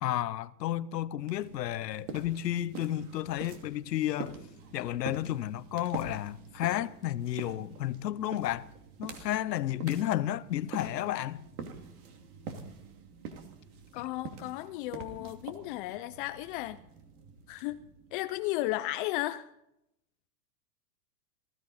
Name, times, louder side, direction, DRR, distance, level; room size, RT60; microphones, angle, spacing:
voice 1, 0.0-4.4 4.7-8.7 9.0-11.4 13.9-14.0, left 13 dB, 85° left, 0.9 m, -32 dB
sound 1, 1.2-18.7, right 5 dB, 65° right, 2.7 m, -46 dB
voice 2, 13.9-16.8 17.5-17.8 18.1-19.5, left 17 dB, 35° left, 0.5 m, -34 dB
19.0 x 14.0 x 4.2 m
hypercardioid pair, 130°, 48 cm